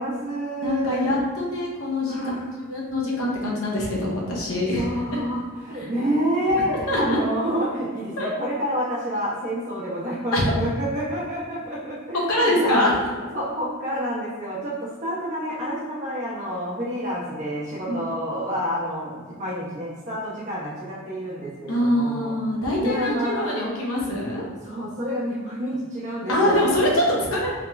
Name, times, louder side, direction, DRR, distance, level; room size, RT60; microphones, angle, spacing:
voice 1, 0.0-1.0 2.0-2.5 4.7-22.3 22.8-23.5 24.6-26.6 26.9-27.0 27.3-27.5, equal, 35° right, -7 dB, 1.3 m, -28 dB
voice 2, 0.6-2.2 2.7-4.8 6.5-7.2 8.2-8.3 10.3-10.4 12.1-12.9 17.9-18.0 21.7-24.4 26.3-27.5, left 1 dB, 85° left, -4 dB, 1.0 m, -24 dB
3.6 x 2.9 x 3.5 m, 1.5 s
head